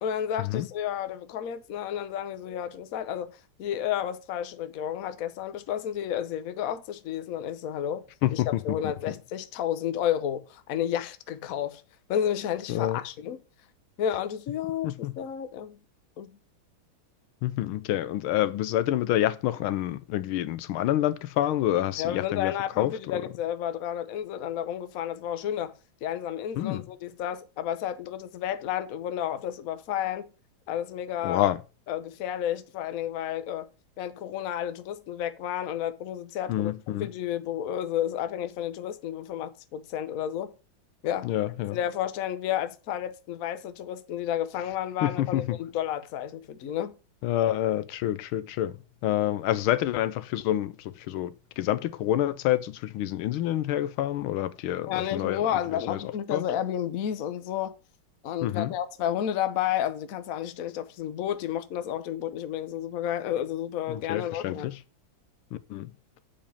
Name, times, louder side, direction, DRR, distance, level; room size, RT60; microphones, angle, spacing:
voice 1, 0.0-8.0 8.3-11.8 12.1-13.4 14.0-15.8 16.2-16.4 22.0-25.7 26.0-30.3 30.7-31.5 31.9-33.7 34.0-36.7 37.0-40.5 41.0-41.3 41.7-46.9 54.9-57.7 58.2-64.7, left 10 dB, 60° left, 1.0 m, -31 dB
voice 2, 8.2-8.8 12.7-13.0 14.8-15.1 17.4-23.2 26.6-26.8 31.2-31.6 36.5-37.1 41.2-41.8 45.0-45.6 47.2-48.8 49.0-55.4 55.9-56.0 56.3-56.4 58.4-58.7 63.9-64.7 65.5-65.9, left 13 dB, 85° left, 1.5 m, -28 dB
6.9 x 5.1 x 7.0 m
omnidirectional pair, 2.2 m